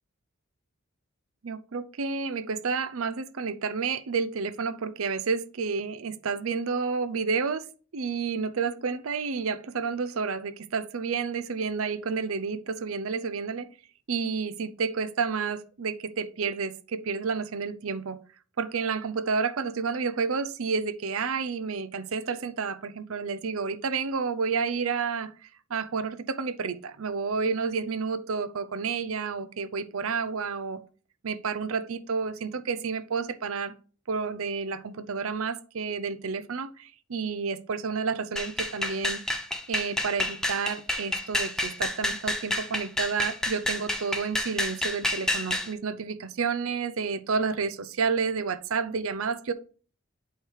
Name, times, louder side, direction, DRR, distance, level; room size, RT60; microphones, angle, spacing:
voice 1, 1.4-7.7 7.9-13.7 14.1-18.2 18.6-30.8 31.2-33.7 34.1-39.2 39.7-49.5, right 5 dB, 85° right, 0.6 m, -30 dB
sound 1, 38.4-45.7, left 1 dB, 5° left, 0.6 m, -29 dB
8.1 x 3.2 x 4.6 m
head